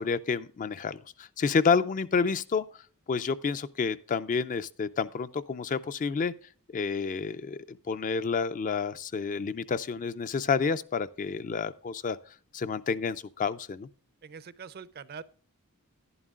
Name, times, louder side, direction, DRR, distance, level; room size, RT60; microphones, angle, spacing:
voice 1, 0.0-2.6 3.1-6.3 6.7-12.2 12.5-13.9, left 5 dB, 35° left, 0.4 m, -29 dB
voice 2, 14.2-15.2, right 6 dB, 45° right, 0.5 m, -43 dB
11.0 x 10.5 x 2.4 m
head